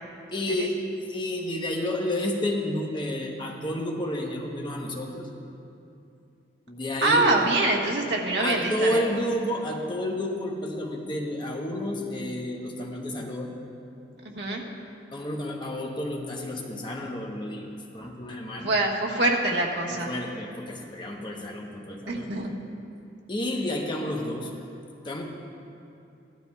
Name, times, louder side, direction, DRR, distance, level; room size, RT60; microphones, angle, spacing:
voice 1, 0.3-5.3 6.7-7.4 8.4-13.6 15.1-18.8 19.9-22.4 23.3-24.5 25.0-25.2, left 1 dB, 25° left, 0 dB, 0.9 m, -30 dB
voice 2, 7.0-9.0 14.2-14.6 18.6-20.1 22.1-22.5, right 2 dB, 70° right, -1 dB, 1.3 m, -24 dB
17.0 x 12.5 x 2.3 m, 2.6 s
head